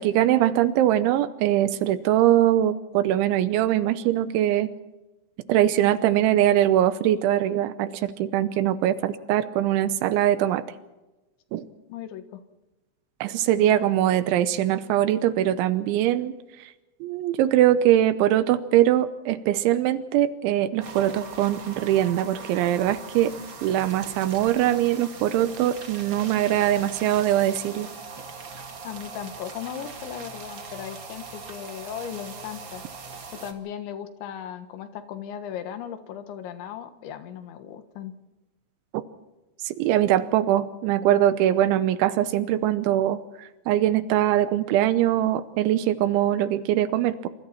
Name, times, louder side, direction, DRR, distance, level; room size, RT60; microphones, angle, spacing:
voice 1, 0.0-4.7 5.5-10.6 11.5-11.7 13.2-16.3 17.0-23.3 23.6-27.9 39.6-47.3, right 12 dB, 80° right, 12 dB, 3.2 m, -22 dB
voice 2, 10.2-10.5 11.9-12.4 28.8-32.8 33.4-38.1, left 9 dB, 75° left, 8 dB, 3.8 m, -37 dB
sound 1, 20.8-33.5, right 4 dB, 45° right, 1.6 m, -40 dB
27.5 x 26.0 x 4.3 m, 1.1 s
omnidirectional pair, 5.4 m